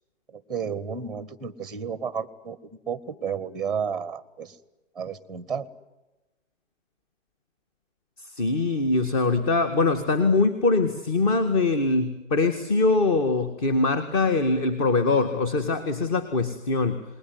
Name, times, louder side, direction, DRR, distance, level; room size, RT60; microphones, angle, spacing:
voice 1, 0.3-4.6 4.9-5.7, right 6 dB, ahead, 18 dB, 1.0 m, -32 dB
voice 2, 8.2-17.0, left 3 dB, 30° left, 10 dB, 2.0 m, -23 dB
29.0 x 20.5 x 9.6 m, 1.0 s
figure-of-eight pair, 140°, 38 cm